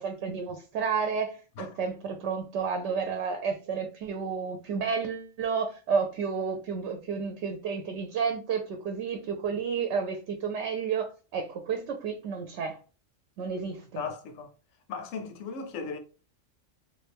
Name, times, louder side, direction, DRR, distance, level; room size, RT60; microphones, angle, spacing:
voice 1, 0.0-12.8 13.4-14.0, right 6 dB, 70° right, 0.8 m, -31 dB
voice 2, 14.0-14.5 14.9-16.0, left 5 dB, 85° left, 1.0 m, -36 dB
3.2 x 2.6 x 3.4 m
omnidirectional pair, 1.3 m